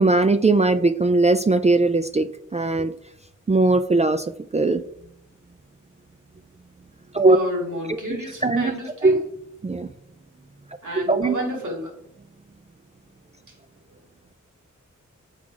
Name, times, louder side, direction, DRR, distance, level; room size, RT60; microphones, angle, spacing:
voice 1, 0.0-2.9 3.5-4.3 4.5-4.8 7.1-7.4 7.9-8.0 8.4-8.8 9.0-9.2 9.6-9.9 11.0-11.3, right 2 dB, 25° right, 9 dB, 0.3 m, -19 dB
voice 2, 7.3-9.2 10.8-11.9, equal, 75° right, -2 dB, 2.4 m, -30 dB
7.4 x 4.7 x 3.8 m, 0.73 s
cardioid pair, 55°, 31 cm